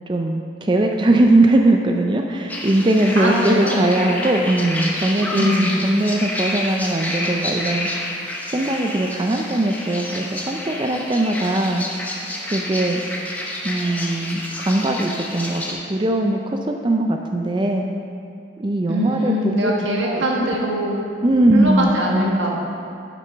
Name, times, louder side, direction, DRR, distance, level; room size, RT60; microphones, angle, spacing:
voice 1, 0.1-7.9 8.5-11.8 12.5-13.0 13.6-15.6 15.9-17.8 18.6-20.5 21.2-21.9, right 1 dB, 25° right, 3 dB, 0.4 m, -20 dB
sound 1, 2.5-15.7, left 1 dB, 10° left, 0.8 m, -29 dB
voice 2, 3.2-3.8 5.3-5.7 18.9-21.0 21.5-22.5, equal, 90° right, -2 dB, 1.7 m, -22 dB
11.5 x 6.1 x 4.5 m, 2.6 s
head